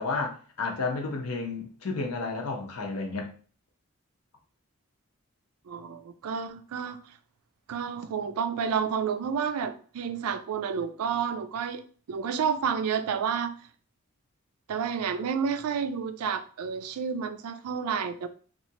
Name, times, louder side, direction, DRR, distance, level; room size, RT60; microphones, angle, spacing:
voice 1, 0.0-3.3, left 3 dB, 85° left, 0.7 m, -31 dB
voice 2, 5.7-7.0 7.7-11.8 12.1-13.5 14.7-18.3, right 6 dB, 90° right, 0.4 m, -30 dB
3.0 x 2.4 x 2.7 m
head